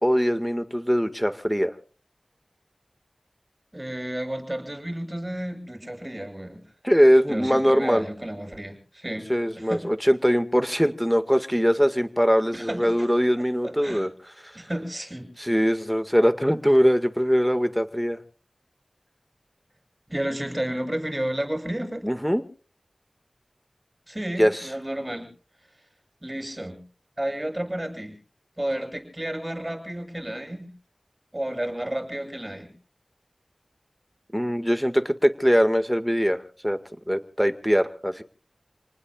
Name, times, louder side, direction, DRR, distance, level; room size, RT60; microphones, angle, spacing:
voice 1, 0.0-1.7 6.8-8.0 9.3-14.1 15.4-18.2 22.0-22.4 24.4-24.7 34.3-36.8 37.1-38.2, equal, ahead, 9 dB, 1.9 m, -22 dB
voice 2, 3.7-6.6 7.3-9.3 9.6-9.8 12.5-13.1 13.4-14.0 14.5-15.3 20.1-22.1 24.1-25.3 26.2-26.8 27.2-28.1 28.6-30.7 31.3-32.7, right 1 dB, 20° right, 5 dB, 7.7 m, -32 dB
29.0 x 19.5 x 2.5 m, 0.41 s
wide cardioid pair, 55°, 0 cm